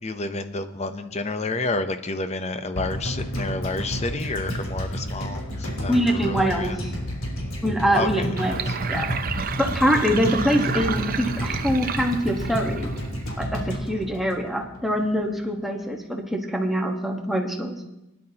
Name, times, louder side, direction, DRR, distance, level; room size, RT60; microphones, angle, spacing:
voice 1, 0.0-6.8 7.9-8.3 8.7-8.8 13.9-14.0, left 2 dB, 30° left, 9 dB, 0.7 m, -30 dB
sound 1, 2.7-15.0 15.2-15.3, equal, 80° left, 3.4 m, -30 dB
voice 2, 5.9-6.9 7.6-8.6 8.9-9.1 9.6-12.9 13.4-17.8, equal, ahead, 1 dB, 1.3 m, -24 dB
Sink (filling or washing), 8.4-13.3, right 7 dB, 45° right, 0.6 m, -32 dB
20.0 x 10.5 x 2.9 m, 0.92 s
head